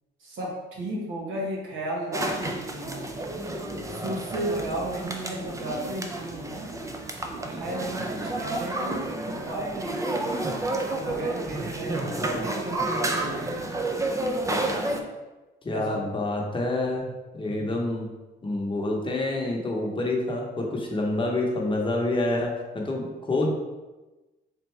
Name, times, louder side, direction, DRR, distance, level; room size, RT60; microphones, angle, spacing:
voice 1, 0.2-3.1 3.9-6.7 7.4-10.4 11.0-13.8 15.7-16.1 17.4-17.7, right 1 dB, 80° right, -2 dB, 1.1 m, -34 dB
sound 1, 2.1-15.0, right 2 dB, 15° right, 0.4 m, -30 dB
voice 2, 15.6-18.1 18.4-23.5, left 2 dB, 25° left, -1 dB, 0.9 m, -27 dB
4.4 x 2.5 x 3.2 m, 1.1 s
cardioid pair, 90°, 20 cm